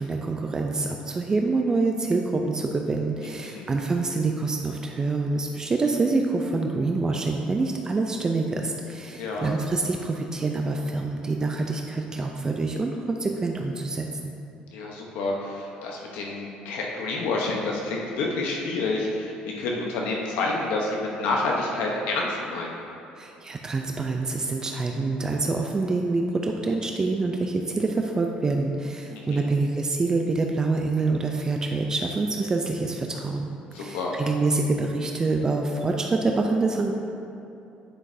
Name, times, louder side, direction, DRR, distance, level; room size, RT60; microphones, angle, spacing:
voice 1, 0.0-14.3 23.2-33.5 33.8-36.9, right 3 dB, 25° right, 2 dB, 0.4 m, -26 dB
voice 2, 9.2-9.6 14.7-22.8 29.1-29.5 33.7-34.2, left 3 dB, 85° left, -1 dB, 0.9 m, -29 dB
9.9 x 6.0 x 2.7 m, 2.8 s
cardioid pair, 125°, 3 cm